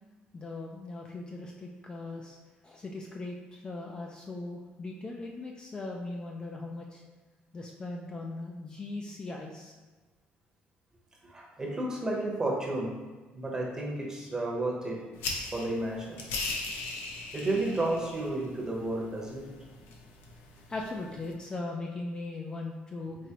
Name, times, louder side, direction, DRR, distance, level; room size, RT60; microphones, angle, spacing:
voice 1, 0.3-2.4 2.6-7.0 7.5-9.7 20.7-23.2, left 2 dB, 25° left, 0 dB, 0.3 m, -39 dB
voice 2, 11.2-13.0 13.3-15.0 15.5-16.2 17.3-19.5, right 2 dB, 20° right, -2 dB, 0.8 m, -32 dB
sound 1, 15.2-21.3, left 3 dB, 80° left, 0.6 m, -40 dB
4.6 x 2.9 x 2.8 m, 1.3 s
cardioid pair, 135°, 4 cm